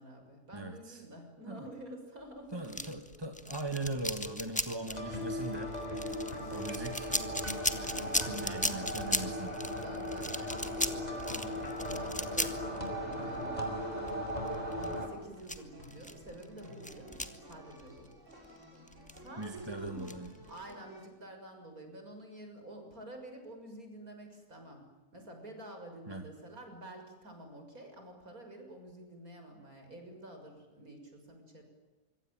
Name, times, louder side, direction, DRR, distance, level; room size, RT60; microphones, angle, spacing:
voice 1, 0.0-2.9 6.3-6.9 7.8-8.9 9.8-13.9 14.2-18.1 19.1-20.1 20.5-24.8 25.1-31.6, right 1 dB, 75° right, 4 dB, 7.1 m, -49 dB
voice 2, 0.5-1.0 1.5-1.7 2.5-5.7 6.5-7.1 8.2-9.5 19.4-20.3 26.1-26.2, right 2 dB, 15° right, 5 dB, 2.1 m, -40 dB
sound 1, 2.6-18.5 18.9-20.7, left 1 dB, 5° left, 1.7 m, -37 dB
sound 2, 4.5-8.6 8.8-21.1, equal, 55° right, 5.9 m, -57 dB
sound 3, 4.9-15.1, equal, 25° left, 5.3 m, -37 dB
26.0 x 24.5 x 9.2 m, 1.2 s
omnidirectional pair, 1.5 m